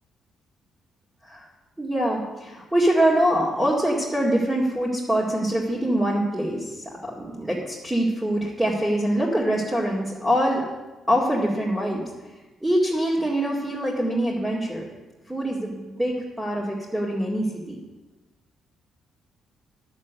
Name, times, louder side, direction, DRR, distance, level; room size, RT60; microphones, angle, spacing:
voice 1, 1.8-10.7 11.1-12.0 12.6-14.8 15.3-17.8, right 1 dB, 10° right, -5 dB, 2.3 m, -24 dB
11.0 x 7.4 x 8.4 m, 1.1 s
cardioid pair, 90°, 0 cm